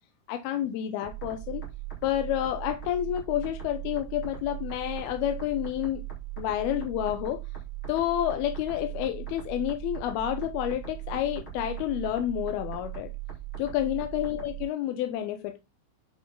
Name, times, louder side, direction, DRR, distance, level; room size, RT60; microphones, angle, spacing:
voice 1, 0.3-1.7 2.0-6.0 6.4-7.4 7.9-13.1 13.6-15.6, left 12 dB, 75° left, 2.5 m, -29 dB
sound 1, 1.0-14.6, right 13 dB, 30° left, 3.9 m, -39 dB
8.8 x 6.2 x 3.7 m
omnidirectional pair, 4.9 m